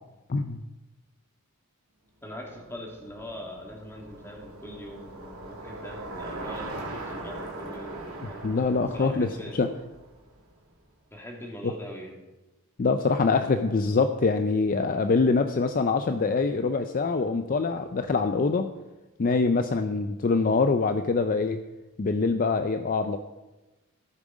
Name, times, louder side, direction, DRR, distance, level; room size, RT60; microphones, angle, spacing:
voice 1, 0.3-0.6 8.4-9.7 12.8-18.7 19.2-21.6 22.0-23.2, left 4 dB, 40° left, 8 dB, 0.4 m, -24 dB
voice 2, 2.2-8.5 8.9-9.6 11.1-12.2, equal, 10° left, -1 dB, 2.3 m, -42 dB
Bicycle, 2.4-10.8, right 2 dB, 75° right, 2.4 m, -40 dB
14.5 x 7.3 x 5.1 m, 1.1 s
head